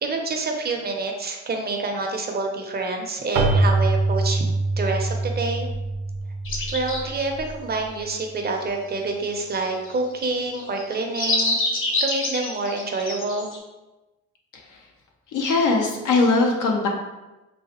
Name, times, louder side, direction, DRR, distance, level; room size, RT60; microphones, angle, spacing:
voice 1, 0.0-4.5 4.8-5.7 6.7-11.6 12.0-13.5, right 3 dB, 35° right, 2 dB, 0.5 m, -27 dB
Keyboard (musical), 3.3-7.8, right 2 dB, 80° right, 0.6 m, -24 dB
sound 1, 6.5-7.3 9.5-13.6, left 2 dB, 45° left, 0.7 m, -26 dB
voice 2, 15.3-16.9, left 3 dB, 85° left, 0 dB, 0.7 m, -21 dB
3.9 x 2.1 x 2.8 m, 1.1 s
cardioid pair, 90°, 30 cm